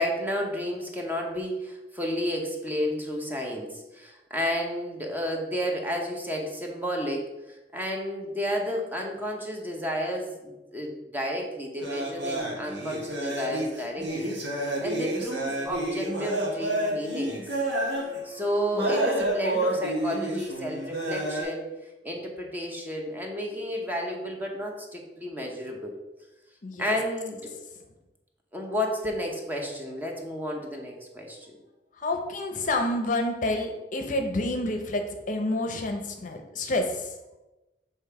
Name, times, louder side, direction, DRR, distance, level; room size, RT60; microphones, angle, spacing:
voice 1, 0.0-14.3 14.6-17.4 18.2-21.7 22.0-25.9 26.8-27.5 28.5-31.6, equal, 10° right, 0 dB, 0.9 m, -31 dB
sound 1, 11.8-21.4, right 1 dB, 85° right, 1.5 m, -30 dB
voice 2, 26.6-27.0 32.0-37.1, left 2 dB, 50° left, 4 dB, 0.7 m, -29 dB
6.8 x 3.3 x 4.7 m, 1.0 s
head